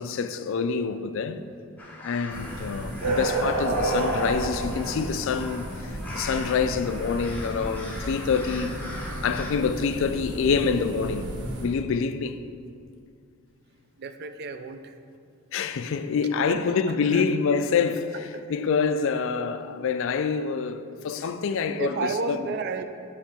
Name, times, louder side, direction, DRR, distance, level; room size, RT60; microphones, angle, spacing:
voice 1, 0.0-1.4 2.0-8.8 9.2-11.3 11.6-12.4 15.5-22.5, left 5 dB, 60° left, 0.3 m, -26 dB
sound 1, 1.8-9.5, left 1 dB, 5° left, 0.7 m, -41 dB
sound 2, 2.3-11.7, right 1 dB, 75° right, 1.5 m, -31 dB
voice 2, 14.0-15.0 16.5-16.8 17.0-17.3 18.3-18.5 21.2-22.8, right 4 dB, 45° right, 0.3 m, -33 dB
8.3 x 3.2 x 6.0 m
head